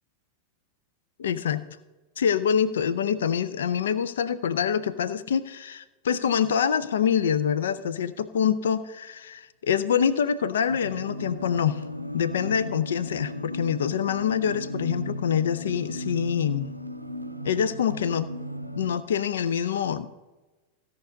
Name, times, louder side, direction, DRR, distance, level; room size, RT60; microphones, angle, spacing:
voice 1, 1.2-1.6 2.2-11.8 12.1-16.8 17.4-18.3 18.8-20.1, left 8 dB, 65° left, 14 dB, 0.6 m, -25 dB
sound 1, 10.7-18.9, equal, 90° right, 0.6 m, -36 dB
16.0 x 5.4 x 5.1 m, 1.2 s
figure-of-eight pair, 90°, 0 cm